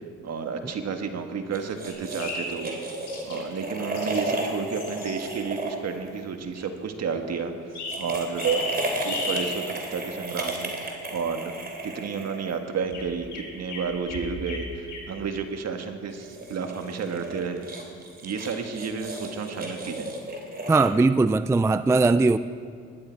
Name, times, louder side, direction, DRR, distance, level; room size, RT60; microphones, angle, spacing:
voice 1, 0.2-2.8 3.2-7.5 8.0-8.6 9.0-11.6 11.8-17.7 18.2-20.1, right 5 dB, 60° right, 5 dB, 1.6 m, -31 dB
sound 1, 1.5-6.7 7.7-12.9 16.1-20.9, right 2 dB, 30° right, 3.0 m, -34 dB
sound 2, 1.9-2.6 3.1-3.4 4.0-4.2 4.7-5.1 7.7-8.0 8.4-9.5 12.9-14.6 14.9-15.1, left 3 dB, 75° left, 4.3 m, -34 dB
voice 2, 20.7-22.4, right 3 dB, 10° right, 13 dB, 0.3 m, -20 dB
20.0 x 12.0 x 4.6 m, 2.1 s
cardioid pair, 90°, 30 cm